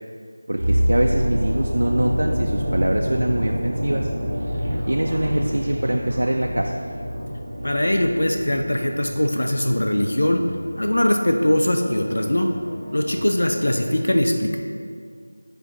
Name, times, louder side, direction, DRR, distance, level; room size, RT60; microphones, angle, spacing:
voice 1, 0.5-4.1 4.9-6.7, right 1 dB, 70° right, 2 dB, 0.3 m, -23 dB
sound 1, 0.6-10.6 10.8-11.0, equal, 30° right, 0.8 m, -27 dB
voice 2, 7.6-10.4 10.8-12.5 12.9-14.6, left 1 dB, 85° left, 4 dB, 0.5 m, -21 dB
sound 2, 8.7-13.9, left 1 dB, 15° left, 0.4 m, -40 dB
6.1 x 4.9 x 3.1 m, 2.1 s
figure-of-eight pair, 180°, 0 cm